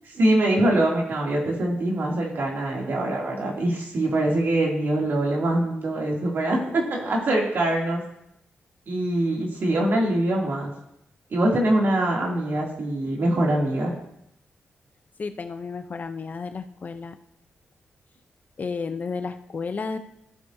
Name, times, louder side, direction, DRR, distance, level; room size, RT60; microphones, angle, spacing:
voice 1, 0.2-8.0 8.9-10.7 11.3-13.9, right 1 dB, 60° right, -2 dB, 2.6 m, -23 dB
voice 2, 15.2-17.1 18.6-20.0, left 4 dB, 40° left, 9 dB, 0.6 m, -32 dB
14.5 x 7.1 x 2.7 m, 0.78 s
wide cardioid pair, 110°, 4 cm